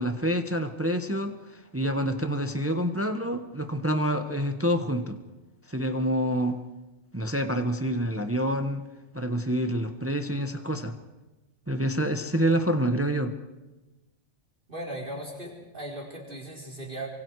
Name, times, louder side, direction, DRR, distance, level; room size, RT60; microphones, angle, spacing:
voice 1, 0.0-5.2 5.7-6.6 7.1-8.8 9.1-10.9 11.7-13.3, equal, 10° right, 7 dB, 1.2 m, -27 dB
voice 2, 14.7-17.1, right 1 dB, 45° right, -1 dB, 4.5 m, -37 dB
28.5 x 24.5 x 4.8 m, 1.1 s
omnidirectional pair, 1.2 m